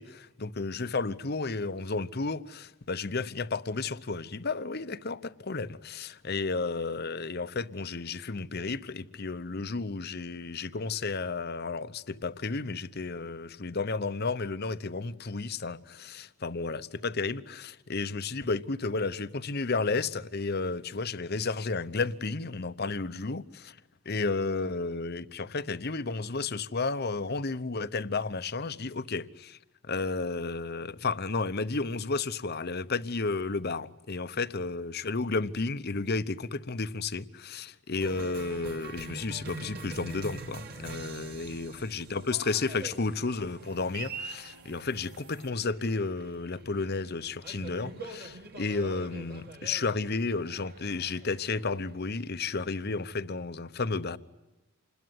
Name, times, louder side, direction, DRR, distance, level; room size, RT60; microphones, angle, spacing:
voice 1, 0.0-23.8 24.0-29.6 29.8-54.2, left 3 dB, 45° left, 0.9 m, -32 dB
Cheering, 38.0-53.1, right 3 dB, 45° right, 2.5 m, -45 dB
sound 1, 40.5-45.5, right 2 dB, 85° right, 2.7 m, -56 dB
27.0 x 20.5 x 9.4 m
head